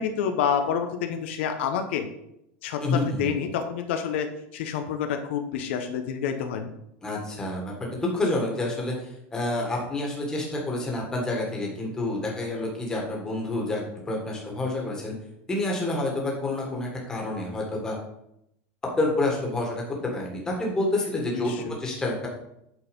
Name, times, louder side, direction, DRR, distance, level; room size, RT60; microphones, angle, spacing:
voice 1, 0.0-2.1 2.6-4.3 4.5-6.7 21.3-21.7, left 7 dB, 75° left, 6 dB, 0.9 m, -28 dB
voice 2, 2.8-3.4 7.0-15.2 15.5-18.0 18.9-22.3, left 2 dB, 10° left, -1 dB, 1.7 m, -28 dB
8.5 x 4.3 x 5.2 m, 0.79 s
supercardioid pair, 175°, 6 cm